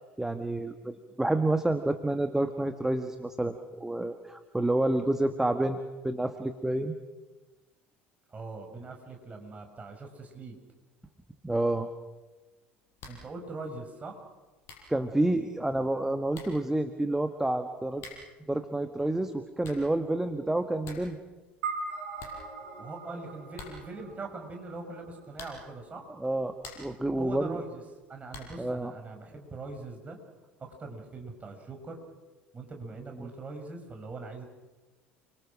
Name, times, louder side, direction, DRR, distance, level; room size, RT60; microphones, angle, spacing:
voice 1, 0.2-7.0 11.4-11.9 14.9-18.0 18.5-21.2 26.2-27.6 28.6-28.9, right 1 dB, 5° right, 7 dB, 1.6 m, -29 dB
voice 2, 8.3-10.6 13.1-14.2 22.8-26.0 27.2-27.8 28.1-30.2 30.6-32.0 32.5-34.4, right 3 dB, 25° right, 3 dB, 6.4 m, -42 dB
sound 1, 13.0-13.3 13.6-13.7 14.3-14.4 14.6-15.0 15.9-16.0 16.3-16.7 17.9-18.4 19.3-20.0 20.3-20.4 20.6-21.2 21.4-21.5 21.8-21.9 22.2-23.0 23.5-24.0 25.3-25.8 26.3-27.0 28.3-28.7, left 3 dB, 45° left, 7.2 m, -47 dB
sound 2, 21.6-26.2, right 4 dB, 65° right, 5.2 m, -41 dB
29.5 x 24.5 x 6.4 m, 1.2 s
figure-of-eight pair, 65°, 6 cm